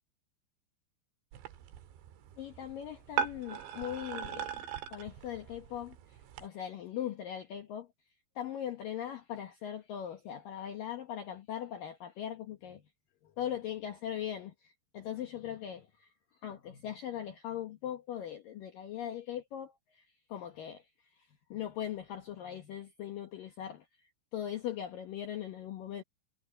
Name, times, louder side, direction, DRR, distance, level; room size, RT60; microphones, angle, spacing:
sound 1, 1.3-6.5, right 8 dB, 75° right, 3.8 m, -40 dB
voice 1, 2.4-4.5 4.9-7.9 8.4-12.8 13.4-16.1 16.4-20.0 20.3-20.8 21.5-23.8 24.3-26.0, left 10 dB, 65° left, 2.5 m, -40 dB
omnidirectional pair, 5.3 m